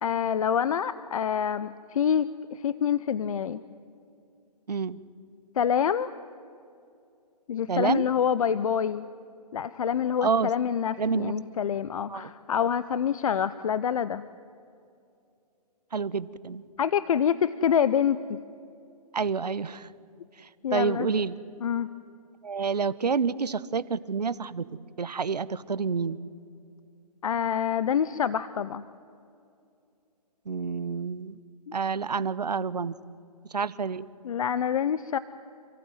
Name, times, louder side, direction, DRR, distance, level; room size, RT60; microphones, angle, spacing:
voice 1, 0.0-3.6 5.6-6.1 7.5-9.0 9.5-14.2 16.8-18.4 20.6-21.1 21.6-21.9 27.2-28.9 31.7-31.8 34.2-35.2, left 8 dB, 60° left, 15 dB, 0.7 m, -26 dB
voice 2, 4.7-5.0 7.7-8.1 10.2-10.5 11.0-11.3 12.1-12.3 15.9-16.6 19.1-19.9 20.7-21.4 22.4-24.7 25.0-26.2 30.5-31.4 31.7-32.9 33.5-34.1, right 5 dB, 90° right, 17 dB, 0.9 m, -28 dB
27.5 x 15.0 x 9.4 m, 2.5 s
hypercardioid pair, 145°, 20 cm